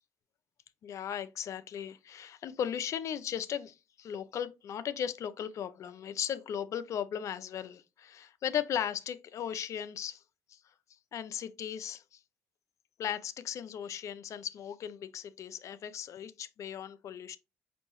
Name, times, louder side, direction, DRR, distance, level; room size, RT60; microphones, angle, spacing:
voice 1, 0.8-10.2 10.5-10.6 11.1-12.2 13.0-17.4, left 9 dB, 60° left, 0.5 m, -37 dB
5.2 x 2.7 x 2.9 m
cardioid pair, 80°, 6 cm